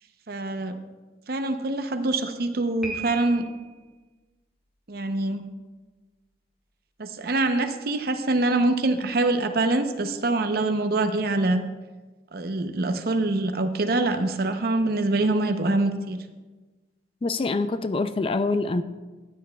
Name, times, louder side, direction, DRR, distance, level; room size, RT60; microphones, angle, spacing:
voice 1, 0.3-0.8 1.3-3.4 4.9-5.4 7.0-11.6 12.3-16.2, right 2 dB, 55° right, 8 dB, 0.7 m, -24 dB
Piano, 2.8-3.8, right 4 dB, ahead, 1.8 m, -37 dB
voice 2, 17.2-18.8, left 3 dB, 30° left, 12 dB, 0.3 m, -25 dB
14.0 x 9.6 x 2.3 m, 1.3 s
head